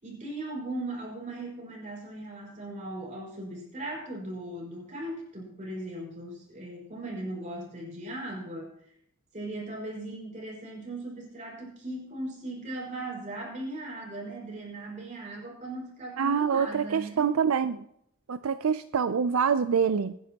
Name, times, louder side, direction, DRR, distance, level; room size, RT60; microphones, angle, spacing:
voice 1, 0.0-8.7 9.3-17.3, right 1 dB, 35° right, -2 dB, 5.3 m, -38 dB
voice 2, 16.2-17.8 18.3-20.2, right 6 dB, 80° right, 12 dB, 0.5 m, -26 dB
24.0 x 10.0 x 2.9 m, 0.74 s
head